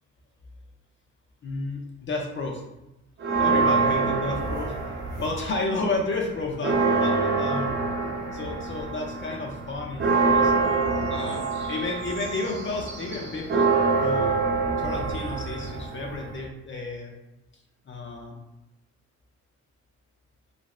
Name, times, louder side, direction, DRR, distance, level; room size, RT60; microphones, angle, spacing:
voice 1, 1.4-2.6 3.4-4.7 5.2-7.8 8.3-10.5 11.1-13.7 14.0-14.4 14.8-17.1 17.9-18.4, left 3 dB, 40° left, 0 dB, 0.6 m, -32 dB
sound 1, 3.2-5.6 5.9-16.4, right 4 dB, 40° right, 0.8 m, -25 dB
2.5 x 2.5 x 3.1 m, 0.95 s
cardioid pair, 90°, 30 cm